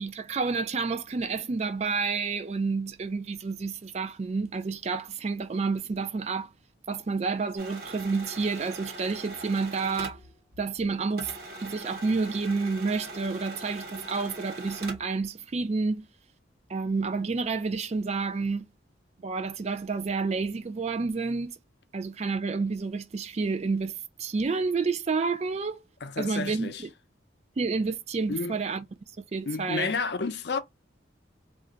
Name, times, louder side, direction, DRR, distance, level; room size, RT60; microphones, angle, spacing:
voice 1, 0.0-6.5 6.9-10.2 10.6-11.3 11.6-16.0 16.7-18.7 19.2-21.6 21.9-25.8 26.2-26.9 27.6-28.8 29.3-29.9, right 4 dB, 35° right, 0.3 m, -29 dB
sound 1, 7.6-10.9 11.2-15.2, right 2 dB, 50° right, 1.0 m, -41 dB
voice 2, 26.0-26.8 28.3-28.6 29.5-30.6, left 4 dB, 60° left, 0.5 m, -31 dB
2.5 x 2.1 x 3.8 m
head